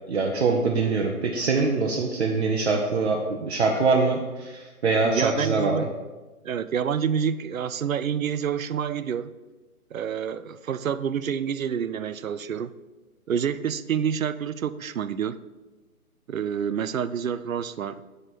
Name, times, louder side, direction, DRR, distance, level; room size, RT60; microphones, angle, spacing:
voice 1, 0.1-5.9, right 4 dB, 45° right, 0 dB, 0.9 m, -24 dB
voice 2, 5.0-5.9 6.4-9.3 9.9-12.7 13.3-15.4 16.3-18.0, right 8 dB, 65° right, 15 dB, 0.6 m, -28 dB
7.7 x 4.8 x 6.0 m, 1.2 s
figure-of-eight pair, 145°, 44 cm